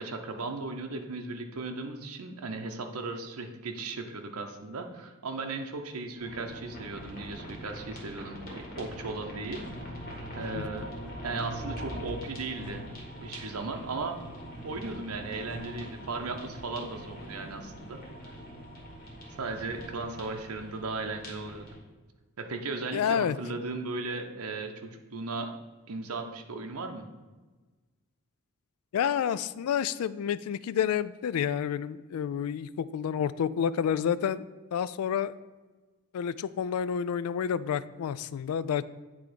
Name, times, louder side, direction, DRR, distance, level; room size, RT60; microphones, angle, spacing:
voice 1, 0.0-9.6 10.4-10.9 11.2-12.8 13.2-14.2 14.6-18.0 19.4-21.8 22.4-25.5 25.9-27.1, right 3 dB, 85° right, 4 dB, 0.8 m, -36 dB
sound 1, 6.2-21.8, equal, 40° left, 2.0 m, -42 dB
voice 2, 10.5-10.9 22.9-23.4 28.9-34.4 34.7-35.3 36.1-38.8, left 8 dB, 80° left, 17 dB, 0.3 m, -29 dB
9.2 x 3.5 x 5.1 m, 1.3 s
head